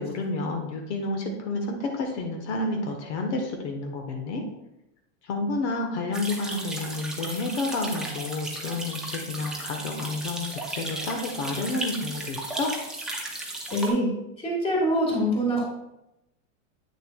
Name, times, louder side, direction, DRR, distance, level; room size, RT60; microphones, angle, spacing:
voice 1, 0.0-4.4 5.2-12.7, left 2 dB, 65° left, 3 dB, 1.2 m, -30 dB
sound 1, 6.1-13.9, right 2 dB, ahead, 0.6 m, -35 dB
voice 2, 13.7-14.1 14.4-15.6, equal, 15° left, -2 dB, 1.8 m, -24 dB
8.5 x 6.6 x 2.3 m, 0.89 s
supercardioid pair, 160°, 37 cm